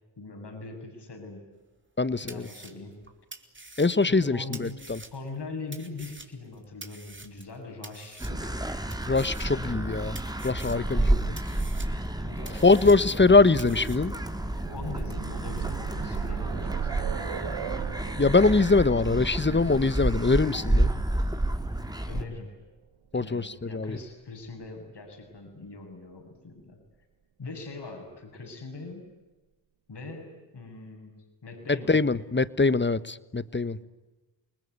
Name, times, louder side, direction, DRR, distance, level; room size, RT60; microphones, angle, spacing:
voice 1, 0.2-1.5 2.2-3.0 4.1-4.8 5.1-8.6 10.9-11.3 12.2-13.1 14.6-17.4 22.0-22.6 23.1-26.8 27.4-29.1 29.9-31.9 33.8-33.9, left 3 dB, 60° left, 4 dB, 7.8 m, -41 dB
sound 1, 1.8-1.9 2.3-5.4 5.7-7.6 7.8-8.6 8.9-9.9 10.1-11.0 11.4-13.3 13.6-14.0, right 2 dB, 25° right, 3.4 m, -46 dB
voice 2, 2.0-2.5 3.8-5.0 9.1-10.2 10.4-11.2 12.6-14.1 18.2-20.9 23.1-24.0 31.7-33.8, left 3 dB, 25° left, 17 dB, 1.3 m, -23 dB
sound 2, 8.2-22.2, right 1 dB, 10° right, 2.9 m, -30 dB
sound 3, 14.4-22.2 23.3-23.4 23.8-23.9, right 8 dB, 75° right, 1.3 m, -36 dB
29.0 x 20.0 x 9.7 m, 1.1 s
cardioid pair, 60°, 46 cm